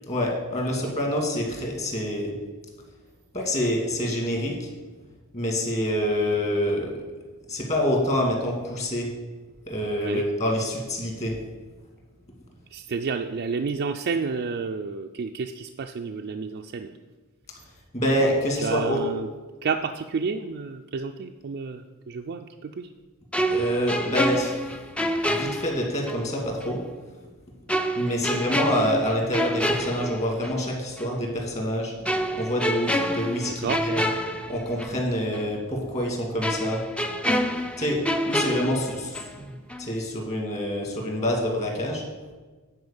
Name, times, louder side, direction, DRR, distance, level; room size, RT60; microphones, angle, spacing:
voice 1, 0.1-2.3 3.3-4.7 5.3-7.0 7.5-9.1 9.7-11.3 17.9-19.0 23.5-24.6 25.3-26.8 28.0-31.9 32.3-34.1 34.5-36.8 37.8-38.0 38.3-39.2 39.4-39.5 39.8-42.1, equal, 30° left, 1 dB, 2.1 m, -26 dB
voice 2, 12.7-16.9 18.6-19.3 19.6-22.9 33.6-33.8, right 5 dB, 50° right, 4 dB, 0.4 m, -30 dB
sound 1, 23.3-26.3 26.6-26.7 27.7-30.7 31.0-31.2 32.1-35.1 35.3-35.5 36.4-39.4 39.7-39.9, equal, 5° left, 0.5 m, -28 dB
9.7 x 4.5 x 7.0 m, 1.3 s
head